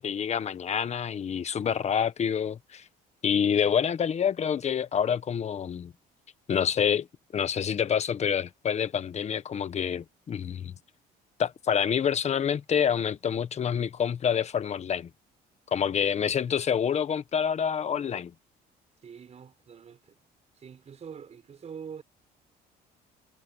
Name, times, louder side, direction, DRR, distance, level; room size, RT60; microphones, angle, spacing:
voice 1, 0.0-2.8 3.2-5.9 6.5-7.1 7.3-10.7 11.4-15.1 15.7-18.3, left 8 dB, 40° left, 1.4 m, -27 dB
voice 2, 15.8-16.2 16.5-16.6 19.0-20.2 20.5-22.0, right 7 dB, 40° right, 6.2 m, -45 dB
cardioid pair, 110°, 17 cm